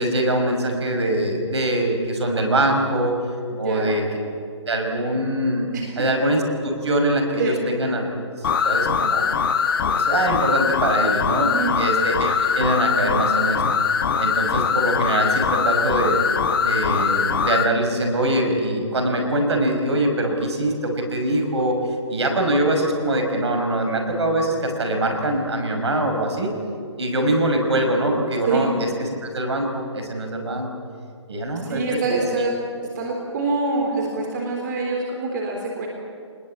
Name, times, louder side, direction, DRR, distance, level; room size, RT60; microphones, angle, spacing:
voice 1, 0.0-3.2 3.6-4.0 4.7-5.7 6.0-8.1 8.6-9.3 9.9-13.8 14.2-16.2 16.6-21.8 22.1-26.5 27.0-28.9 29.2-30.7 31.3-32.2, right 1 dB, 60° right, 4 dB, 5.9 m, -23 dB
voice 2, 3.5-4.0 5.7-6.1 7.4-7.6 11.5-11.8 28.4-28.7 31.6-32.5 33.0-35.9, right 3 dB, 40° right, 0 dB, 3.9 m, -25 dB
sound 1, 8.4-17.7, left 6 dB, 50° left, 1.4 m, -22 dB
26.5 x 20.5 x 8.8 m, 2.3 s
figure-of-eight pair, 140°, 16 cm